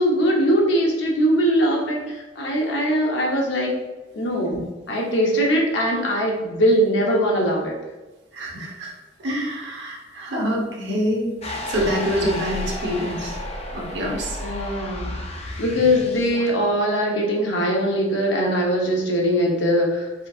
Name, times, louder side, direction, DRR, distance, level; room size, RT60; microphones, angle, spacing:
voice 1, 0.0-2.0 2.4-3.7 4.1-4.5 4.9-7.7 14.4-15.1 15.6-20.3, equal, 75° left, -1 dB, 1.0 m, -21 dB
voice 2, 8.3-8.9 9.2-13.4 13.7-14.4, equal, 70° right, -2 dB, 1.1 m, -26 dB
sound 1, 11.4-16.5, left 1 dB, 35° left, 0.6 m, -32 dB
4.8 x 3.8 x 2.4 m, 1.2 s
head